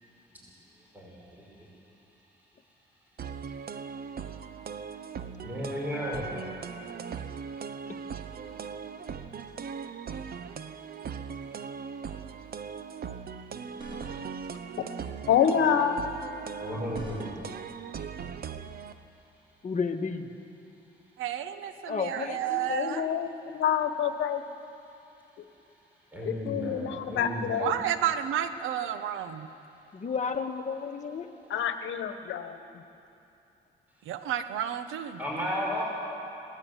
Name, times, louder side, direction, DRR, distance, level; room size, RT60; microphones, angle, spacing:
sound 1, 3.2-18.9, right 6 dB, 50° right, 1.0 m, -39 dB
voice 1, 5.4-6.3 16.6-17.3 26.1-27.7 35.2-35.8, equal, 10° right, -4 dB, 5.8 m, -33 dB
sound 2, 13.6-14.5 16.5-17.6, equal, 25° right, 4.6 m, -48 dB
voice 2, 15.3-16.1 22.7-24.4 26.2-27.7 31.5-32.6, left 8 dB, 75° left, 8 dB, 1.3 m, -27 dB
voice 3, 19.6-20.3 21.9-23.1 29.9-31.3, left 5 dB, 40° left, 5 dB, 1.6 m, -33 dB
voice 4, 21.2-23.1 27.6-29.5 34.1-35.2, right 10 dB, 90° right, 10 dB, 1.1 m, -31 dB
22.0 x 18.0 x 8.2 m, 2.8 s
cardioid pair, 90°, 20 cm